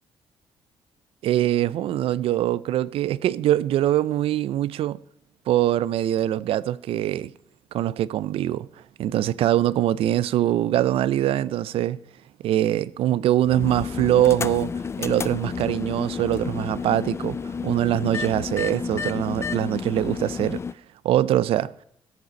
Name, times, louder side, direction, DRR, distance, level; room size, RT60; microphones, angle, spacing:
voice 1, 1.2-5.0 5.5-7.3 7.7-8.7 9.0-12.0 12.4-14.7 15.0-17.4 17.6-20.6 21.0-21.7, right 12 dB, 75° right, 0.4 m, -23 dB
sound 1, 13.4-20.7, left 5 dB, 30° left, 0.3 m, -31 dB
13.5 x 6.8 x 4.2 m
cardioid pair, 80°, 10 cm